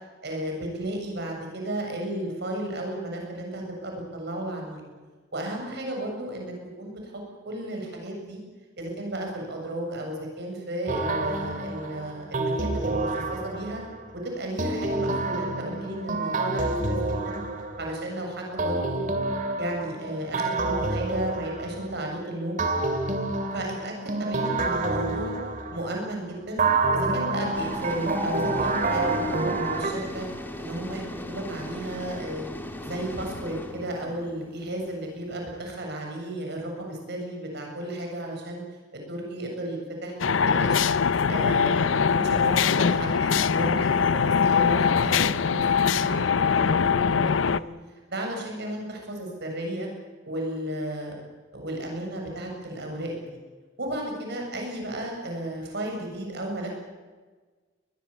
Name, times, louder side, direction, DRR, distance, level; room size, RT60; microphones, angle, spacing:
voice 1, 0.2-4.8 5.3-8.4 8.8-13.8 14.1-17.4 17.8-19.0 19.6-22.6 23.5-23.9 24.2-25.3 25.7-26.6 26.9-29.1 29.4-30.3 30.6-32.5 32.8-38.6 38.9-40.9 41.3-47.7 48.1-49.9 50.3-51.2 51.5-53.4 53.8-56.7, right 1 dB, 60° right, 1 dB, 7.6 m, -34 dB
sound 1, 10.9-14.0 14.6-18.1 18.6-22.1 22.6-26.1 26.6-29.9, right 2 dB, 45° right, 2.6 m, -28 dB
sound 2, 27.5-35.5, left 1 dB, 10° left, 2.2 m, -38 dB
sound 3, 40.2-47.6, left 6 dB, 80° left, 0.6 m, -22 dB
22.5 x 20.0 x 8.7 m, 1.4 s
head